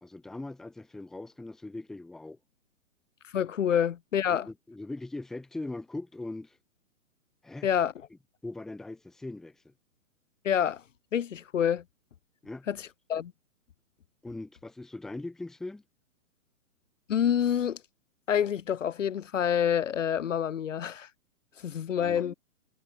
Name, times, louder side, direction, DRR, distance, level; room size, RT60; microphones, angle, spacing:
voice 1, 0.0-2.4 4.3-6.6 7.4-7.7 8.4-9.7 12.4-12.7 14.2-15.8 22.0-22.3, left 2 dB, ahead, 1.2 m, -40 dB
voice 2, 3.3-4.5 7.6-7.9 10.4-10.8 11.1-11.8 12.7-13.3 17.1-17.8 18.3-21.1 21.6-22.3, left 9 dB, 60° left, 1.2 m, -27 dB
hypercardioid pair, 175°, 42 cm